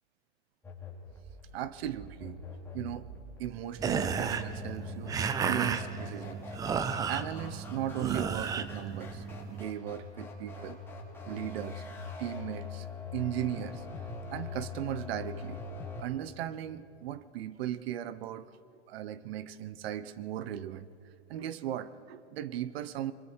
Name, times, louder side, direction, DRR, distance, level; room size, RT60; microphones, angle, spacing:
sound 1, 0.6-16.0, left 4 dB, 5° left, 3.4 m, -43 dB
voice 1, 1.5-2.4 2.7-6.5 7.1-10.8 11.3-11.8 12.2-12.9 13.1-13.8 14.3-15.6 16.0-18.5 18.9-20.9 21.3-23.1, right 11 dB, 60° right, 16 dB, 1.0 m, -37 dB
sound 2, 3.8-9.6, right 6 dB, 10° right, 0.4 m, -33 dB
28.0 x 22.5 x 4.6 m, 2.7 s
supercardioid pair, 145°, 34 cm